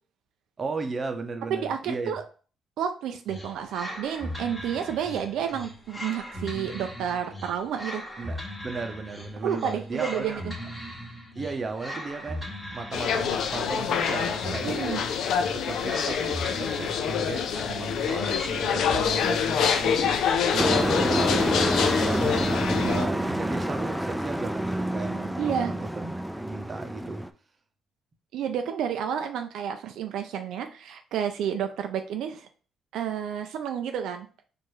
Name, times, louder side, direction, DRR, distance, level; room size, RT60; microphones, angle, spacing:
voice 1, 0.6-2.1 8.2-10.7 11.3-14.7 15.5-20.2 20.5-27.2, right 4 dB, 35° right, 6 dB, 0.7 m, -36 dB
voice 2, 1.5-2.2 2.8-8.0 9.4-10.5 14.6-15.0 25.4-25.7 28.3-32.5 32.9-34.3, right 8 dB, 85° right, 6 dB, 0.4 m, -30 dB
sound 1, 3.3-19.2, equal, 15° left, 1.4 m, -39 dB
sound 2, 12.9-23.1, left 7 dB, 75° left, 0.4 m, -26 dB
Truck, 20.6-27.3, right 1 dB, 5° right, 0.3 m, -28 dB
4.5 x 2.5 x 3.1 m, 0.39 s
cardioid pair, 90°, 0 cm